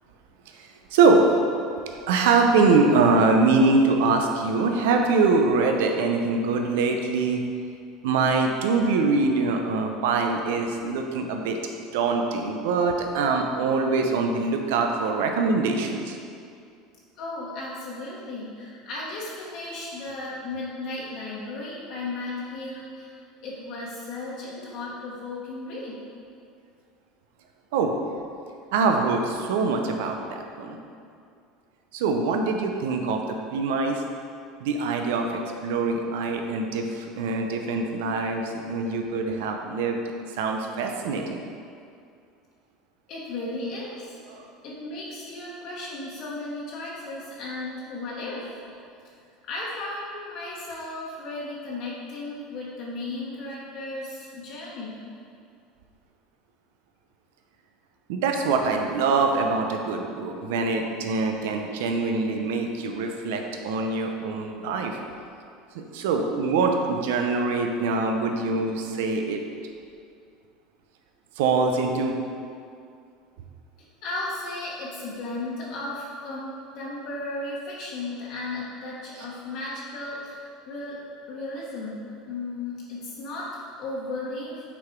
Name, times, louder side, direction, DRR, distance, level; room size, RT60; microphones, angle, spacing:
voice 1, 0.6-1.3 1.9-7.4 8.0-11.6 11.9-16.2 27.7-28.2 28.7-30.8 31.9-34.0 34.6-41.4 44.3-44.4 58.1-65.0 65.7-69.4 71.4-72.2, right 4 dB, 85° right, 3 dB, 0.6 m, -24 dB
voice 2, 17.2-23.1 23.4-26.0 43.1-44.2 44.6-48.4 49.4-55.0 74.0-81.0 81.3-82.0 82.3-84.6, left 2 dB, 50° left, -6 dB, 1.1 m, -35 dB
5.8 x 4.1 x 4.5 m, 2.4 s
cardioid pair, 145°, 0 cm